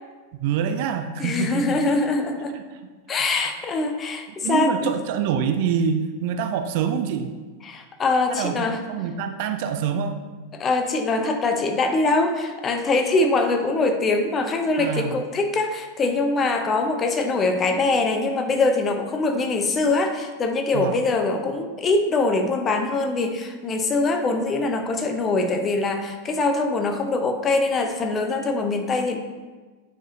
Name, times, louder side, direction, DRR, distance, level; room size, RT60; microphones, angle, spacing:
voice 1, 0.4-1.8 2.5-2.6 4.4-7.3 8.3-10.2 14.8-15.1 20.7-20.9, right 7 dB, 50° right, 7 dB, 0.5 m, -25 dB
voice 2, 1.2-2.6 3.1-4.9 7.6-8.8 10.5-29.2, left 3 dB, 25° left, 5 dB, 0.7 m, -23 dB
8.8 x 4.9 x 2.8 m, 1.3 s
figure-of-eight pair, 90°, 0 cm